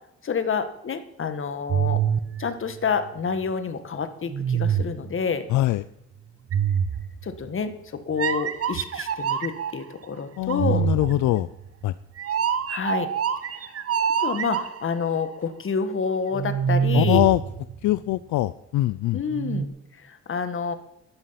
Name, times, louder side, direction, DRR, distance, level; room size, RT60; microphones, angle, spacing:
voice 1, 0.2-2.0 2.4-5.4 7.2-10.9 12.7-13.1 13.4-13.7 14.2-17.2 19.1-20.7, left 5 dB, 45° left, 10 dB, 1.7 m, -28 dB
sound 1, 1.7-3.5 4.3-5.2 6.5-7.5 8.2-9.8 10.5-15.0 16.3-18.1 19.3-19.7, right 8 dB, 50° right, 1.1 m, -26 dB
voice 2, 5.5-5.8 10.4-11.5 11.8-11.9 16.9-17.4 17.8-19.2, left 15 dB, 75° left, 16 dB, 0.5 m, -22 dB
12.0 x 11.5 x 5.8 m, 0.79 s
cardioid pair, 90°, 30 cm